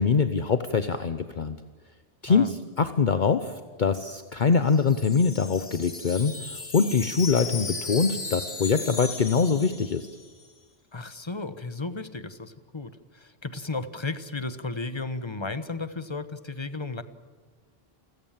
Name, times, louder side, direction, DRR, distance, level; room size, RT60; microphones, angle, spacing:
voice 1, 0.0-1.6 2.2-10.1, left 5 dB, 50° left, 10 dB, 1.0 m, -24 dB
Wind chime, 4.4-10.4, left 4 dB, 75° left, 2.4 m, -37 dB
voice 2, 10.9-17.0, left 3 dB, 25° left, 12 dB, 1.1 m, -34 dB
29.0 x 16.0 x 7.5 m, 1.5 s
omnidirectional pair, 1.1 m